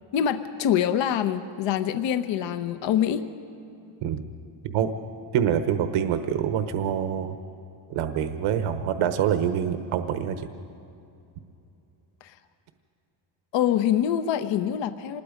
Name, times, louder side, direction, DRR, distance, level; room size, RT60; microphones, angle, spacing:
voice 1, 0.1-3.2 12.2-12.3 13.5-15.2, left 9 dB, 65° left, 10 dB, 1.0 m, -25 dB
voice 2, 5.3-7.4 7.9-10.5, right 9 dB, 80° right, 9 dB, 1.2 m, -25 dB
26.5 x 20.5 x 5.2 m, 2.8 s
cardioid pair, 150°, 48 cm